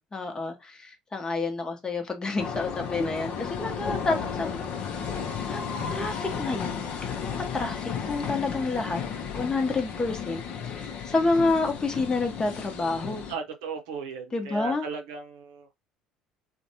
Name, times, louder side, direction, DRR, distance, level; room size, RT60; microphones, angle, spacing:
voice 1, 0.0-4.5 4.8-5.0 5.5-9.0 9.3-13.2 14.3-14.9, left 3 dB, 25° left, 0.8 m, -29 dB
sound 1, 2.4-13.3, left 6 dB, 55° left, 0.5 m, -34 dB
voice 2, 13.3-15.7, right 4 dB, 70° right, 0.6 m, -36 dB
2.5 x 2.2 x 2.8 m
hypercardioid pair, 60°, 3 cm